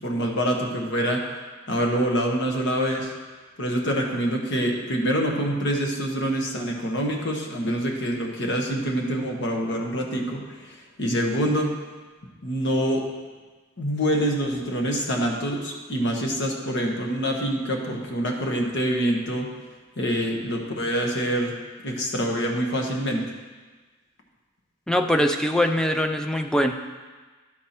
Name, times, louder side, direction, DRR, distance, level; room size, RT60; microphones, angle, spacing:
voice 1, 0.0-1.2 1.7-3.1 3.6-11.8 12.4-13.1 13.8-19.5 20.0-21.5 21.8-23.3, equal, 60° left, 1 dB, 1.2 m, -25 dB
voice 2, 24.9-26.7, equal, 5° left, 5 dB, 0.4 m, -22 dB
12.0 x 4.6 x 4.3 m, 1.4 s
head